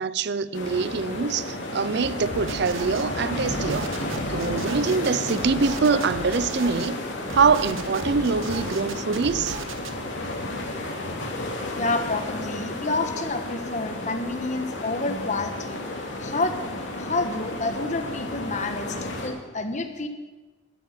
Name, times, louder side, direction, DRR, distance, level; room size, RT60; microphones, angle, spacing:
voice 1, 0.0-3.9 4.3-7.0 7.3-9.6, right 5 dB, 55° right, 0.5 m, -24 dB
sound 1, 0.5-19.3, left 1 dB, 65° left, 3.0 m, -32 dB
sound 2, 2.3-3.1 3.4-6.9 7.3-9.9, right 3 dB, 90° right, 1.2 m, -37 dB
voice 2, 11.7-15.8 16.2-16.6 16.9-20.1, left 3 dB, 35° left, 1.3 m, -29 dB
12.5 x 12.0 x 7.3 m
head